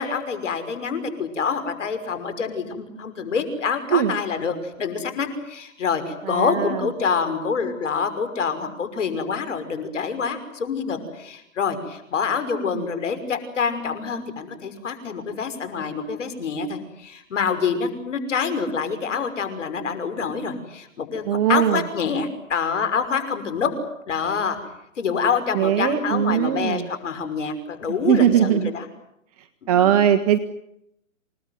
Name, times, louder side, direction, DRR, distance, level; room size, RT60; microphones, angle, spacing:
voice 1, 0.0-21.2 21.5-23.7 24.1-24.6 25.0-28.8 29.6-29.9, left 5 dB, 65° left, 9 dB, 5.9 m, -26 dB
voice 2, 6.2-6.6 12.7-12.8 21.3-21.8 25.5-26.9 28.0-28.7 29.7-30.4, right 9 dB, 30° right, 8 dB, 1.5 m, -20 dB
28.5 x 19.0 x 9.4 m, 0.79 s
hypercardioid pair, 150°, 40 cm